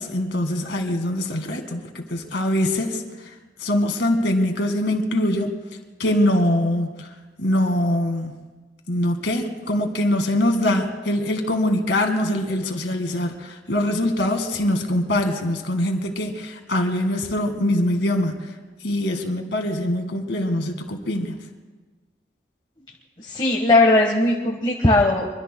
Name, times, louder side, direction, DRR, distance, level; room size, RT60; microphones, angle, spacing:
voice 1, 0.0-3.3 3.6-5.5 6.0-7.1 7.4-8.4 8.9-18.4 18.8-21.4, left 1 dB, 90° left, 4 dB, 2.0 m, -23 dB
voice 2, 23.2-25.2, left 2 dB, 30° left, -1 dB, 1.4 m, -18 dB
24.5 x 24.5 x 2.3 m, 1.3 s
head